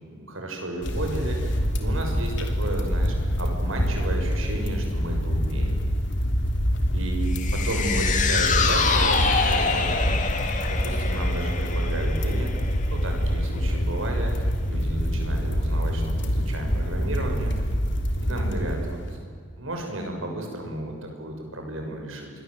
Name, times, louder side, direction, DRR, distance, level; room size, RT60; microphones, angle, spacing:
voice 1, 0.1-5.8 6.9-12.5 12.9-17.7 18.2-19.2 19.6-22.3, right 1 dB, 70° right, 2 dB, 6.6 m, -33 dB
sound 1, 0.8-19.2, equal, 55° left, 3.1 m, -26 dB
sound 2, 7.3-13.8 14.1-14.2, left 5 dB, 35° left, 2.5 m, -26 dB
28.0 x 22.5 x 8.0 m, 2.1 s
head